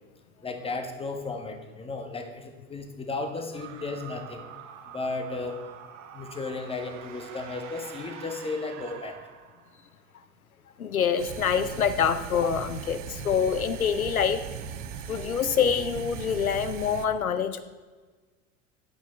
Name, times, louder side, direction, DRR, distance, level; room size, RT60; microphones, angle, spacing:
voice 1, 0.4-4.4 4.9-5.6 6.1-9.2, left 3 dB, 15° left, 6 dB, 1.3 m, -34 dB
sound 1, 3.5-9.9, right 8 dB, 45° right, 1.3 m, -46 dB
voice 2, 10.8-14.4 15.1-17.6, left 7 dB, 85° left, 11 dB, 0.6 m, -26 dB
sound 2, 11.2-17.1, right 7 dB, 60° right, 0.8 m, -38 dB
10.5 x 8.5 x 4.3 m, 1.4 s
figure-of-eight pair, 75°, 42 cm